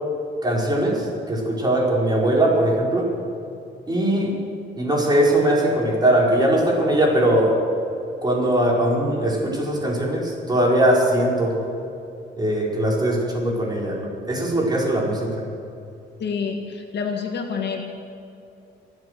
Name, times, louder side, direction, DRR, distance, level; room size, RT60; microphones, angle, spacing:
voice 1, 0.4-3.1 3.9-4.4 4.8-7.6 8.2-11.5 12.3-15.3, right 1 dB, 20° right, -3 dB, 5.0 m, -20 dB
voice 2, 16.2-17.8, left 5 dB, 60° left, 4 dB, 1.7 m, -27 dB
24.0 x 8.2 x 6.8 m, 2.7 s
cardioid pair, 90°, 20 cm